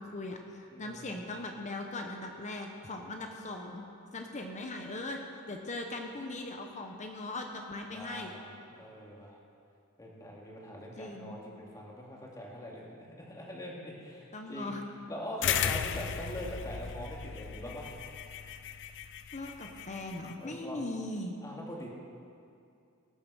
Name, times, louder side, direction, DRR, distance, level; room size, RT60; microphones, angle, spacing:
voice 1, 0.0-3.9 4.1-5.2 5.5-8.3 11.0-11.4 14.3-14.8 19.3-21.4, left 2 dB, 35° left, 3 dB, 0.9 m, -39 dB
voice 2, 0.7-1.2 7.9-9.4 10.0-14.7 15.1-17.9 20.4-20.8 21.4-21.9, equal, 15° left, -3 dB, 2.2 m, -43 dB
sound 1, 15.4-20.3, left 8 dB, 55° left, 0.5 m, -36 dB
18.0 x 7.2 x 6.3 m, 2.5 s
head